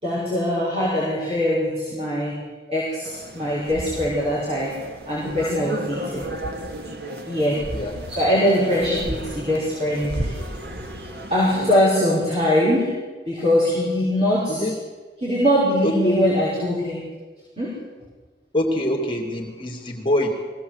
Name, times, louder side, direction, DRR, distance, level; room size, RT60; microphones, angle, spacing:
voice 1, 0.0-2.4 2.7-4.7 5.1-6.2 7.3-7.6 8.1-10.3 11.3-12.9 13.3-14.7 15.2-17.0 17.6-17.8, equal, 35° right, -7 dB, 5.6 m, -22 dB
sound 1, 3.0-11.8, right 1 dB, 65° right, 2.0 m, -33 dB
voice 2, 14.5-14.8 15.8-16.3 18.5-20.3, left 1 dB, 30° left, 0 dB, 2.6 m, -24 dB
22.0 x 17.5 x 8.0 m, 1.4 s
head